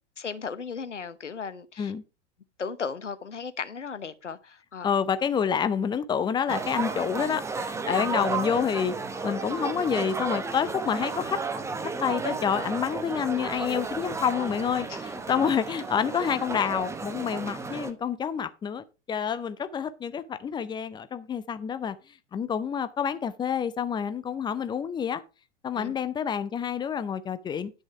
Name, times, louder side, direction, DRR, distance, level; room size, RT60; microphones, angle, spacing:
voice 1, 0.2-1.9 2.6-4.9 8.0-8.1 14.9-15.0 25.7-25.9, left 5 dB, 80° left, 0.9 m, -36 dB
voice 2, 4.8-8.9 9.2-11.4 12.0-22.0 22.3-25.2 25.6-27.7, left 7 dB, 15° left, 0.6 m, -28 dB
sound 1, 6.5-17.9, right 4 dB, 10° right, 0.9 m, -33 dB
10.5 x 6.3 x 4.6 m
figure-of-eight pair, 95°, 35 cm